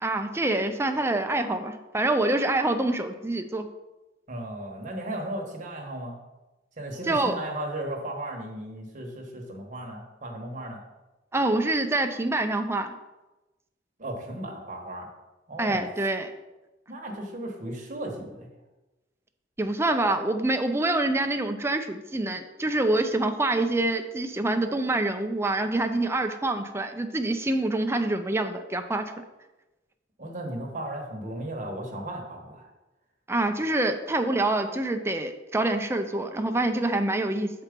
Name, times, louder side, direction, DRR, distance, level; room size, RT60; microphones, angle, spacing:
voice 1, 0.0-3.7 7.1-7.3 11.3-12.9 15.6-16.3 19.6-29.0 33.3-37.5, right 2 dB, 15° right, 6 dB, 0.5 m, -26 dB
voice 2, 4.3-6.1 6.8-10.8 14.0-15.1 15.5-15.8 16.9-18.5 30.2-32.7, right 1 dB, 45° right, 0 dB, 1.4 m, -35 dB
7.1 x 4.4 x 5.2 m, 1.1 s
head